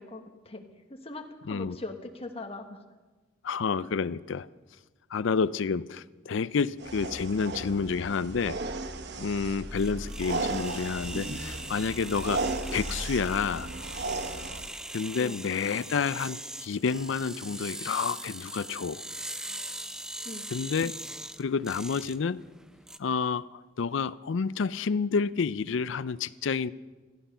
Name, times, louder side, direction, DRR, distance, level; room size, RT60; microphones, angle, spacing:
voice 1, 0.0-2.8 15.2-15.4 20.2-20.4, left 2 dB, 30° left, 5 dB, 1.5 m, -41 dB
voice 2, 1.4-1.8 3.4-4.5 5.1-8.6 9.2-12.4 12.7-13.7 14.9-19.0 20.5-20.9 21.4-22.4 23.0-26.7, left 5 dB, 70° left, 18 dB, 0.5 m, -29 dB
sound 1, 6.8-14.7, right 2 dB, 60° right, 1.1 m, -35 dB
sound 2, 8.3-23.0, right 1 dB, 5° right, 0.4 m, -41 dB
16.0 x 14.0 x 5.6 m, 1.3 s
head